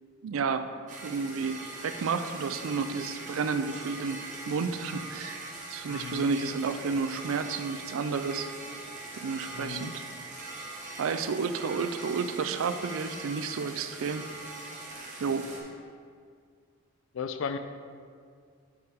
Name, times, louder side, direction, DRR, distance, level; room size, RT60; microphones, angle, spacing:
voice 1, 0.2-0.7 1.0-4.2 4.5-8.5 9.1-10.0 11.0-14.3 15.2-15.5, right 5 dB, 70° right, 10 dB, 0.4 m, -31 dB
sound 1, 0.9-15.6, right 2 dB, 35° right, 1.0 m, -42 dB
voice 2, 5.9-6.3 9.5-10.0 17.1-17.6, left 6 dB, 65° left, 9 dB, 0.4 m, -35 dB
7.8 x 5.1 x 3.5 m, 2.1 s
head